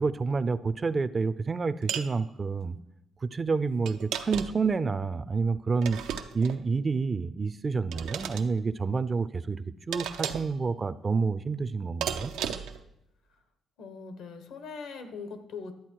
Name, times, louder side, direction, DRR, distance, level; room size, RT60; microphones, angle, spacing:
voice 1, 0.0-2.8 3.2-6.0 6.3-12.3, right 4 dB, 35° right, 15 dB, 0.5 m, -29 dB
sound 1, 1.9-2.1 3.9-4.7 5.8-6.6 7.9-8.5 9.9-10.6 12.0-12.8, right 9 dB, 90° right, 0.7 m, -34 dB
voice 2, 13.8-15.7, left 5 dB, 80° left, 8 dB, 1.3 m, -41 dB
11.5 x 8.2 x 4.7 m, 0.82 s
cardioid pair, 90°, 0 cm